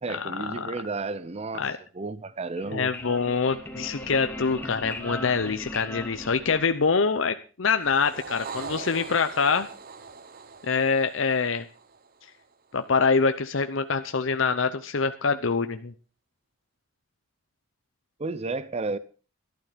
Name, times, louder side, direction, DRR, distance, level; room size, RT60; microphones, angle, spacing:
voice 1, 0.0-2.9 18.2-19.0, right 3 dB, 30° right, 0.6 m, -32 dB
sound 1, 2.4-7.1, left 1 dB, 10° left, 2.6 m, -38 dB
voice 2, 2.7-9.7 10.6-11.6 12.7-15.9, left 5 dB, 70° left, 0.8 m, -25 dB
sound 2, 7.8-12.4, right 4 dB, 45° right, 1.0 m, -41 dB
12.0 x 12.0 x 5.1 m
head